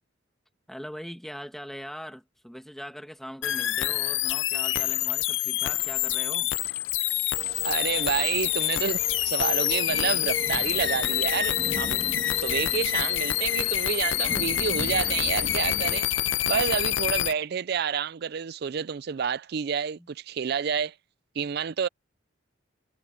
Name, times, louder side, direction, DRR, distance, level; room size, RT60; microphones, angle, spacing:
voice 1, 0.7-6.5 15.9-16.1 16.5-16.6 20.0-20.1, equal, ahead, 1.7 m, -41 dB
sound 1, 3.4-17.3, left 13 dB, 70° left, 0.6 m, -27 dB
sound 2, 4.5-16.5, left 9 dB, 50° left, 2.4 m, -48 dB
sound 3, 7.3-16.0, left 1 dB, 30° left, 2.4 m, -39 dB
voice 2, 7.6-9.0 9.3-12.0 12.3-16.1 16.5-20.9 21.4-21.9, right 7 dB, 50° right, 0.4 m, -29 dB
head